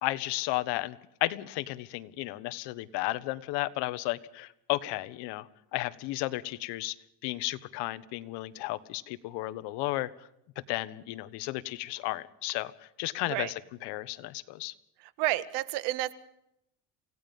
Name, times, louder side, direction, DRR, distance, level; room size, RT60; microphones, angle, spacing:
voice 1, 0.0-7.0 7.2-10.1 10.7-13.5 13.8-14.7, left 18 dB, 75° left, 14 dB, 1.4 m, -33 dB
voice 2, 15.0-16.1, right 16 dB, 80° right, 14 dB, 1.6 m, -30 dB
28.0 x 17.5 x 5.5 m, 0.79 s
cardioid pair, 155°, 41 cm